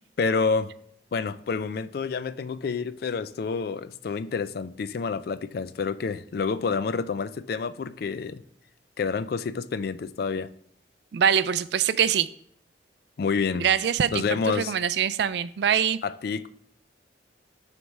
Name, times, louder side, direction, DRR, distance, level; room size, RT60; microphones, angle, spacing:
voice 1, 0.2-0.7 1.1-8.4 9.0-10.5 13.2-13.6 14.1-14.7 16.0-16.5, left 5 dB, 55° left, 0.3 m, -28 dB
voice 2, 11.1-12.3 13.6-16.0, right 8 dB, 65° right, 0.3 m, -24 dB
7.8 x 3.4 x 5.3 m
head